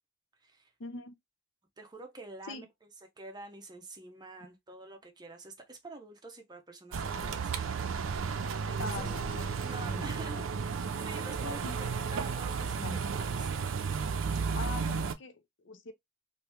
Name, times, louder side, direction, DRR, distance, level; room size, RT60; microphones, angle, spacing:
voice 1, 0.8-1.2 2.5-2.7 4.4-4.5 8.8-10.4 11.4-11.8 12.7-13.0 14.5-15.9, left 3 dB, 65° left, 0.6 m, -43 dB
voice 2, 1.8-2.7 3.2-7.5 8.7-9.2 9.6-10.4 11.0-13.7, right 2 dB, 20° right, 0.7 m, -47 dB
sound 1, 6.9-15.1, right 5 dB, 85° right, 0.4 m, -33 dB
3.0 x 2.6 x 3.3 m
head